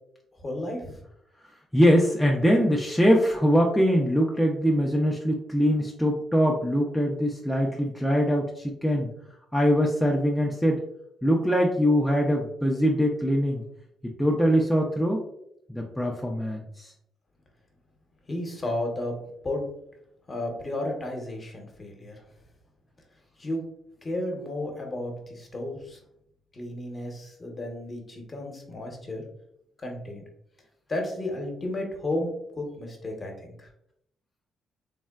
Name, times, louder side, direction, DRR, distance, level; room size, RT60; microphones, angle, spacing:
voice 1, 0.4-1.0 18.3-19.2 19.4-19.6 20.3-22.2 23.4-23.6 24.0-26.0 26.5-29.2 29.8-30.2 30.9-33.7, left 1 dB, 30° left, 1 dB, 0.8 m, -33 dB
voice 2, 1.7-9.1 9.5-10.8 11.2-13.6 14.2-15.2 15.7-16.9, equal, 5° left, -1 dB, 0.4 m, -23 dB
3.2 x 2.1 x 2.3 m, 0.76 s
cardioid pair, 90°, 0 cm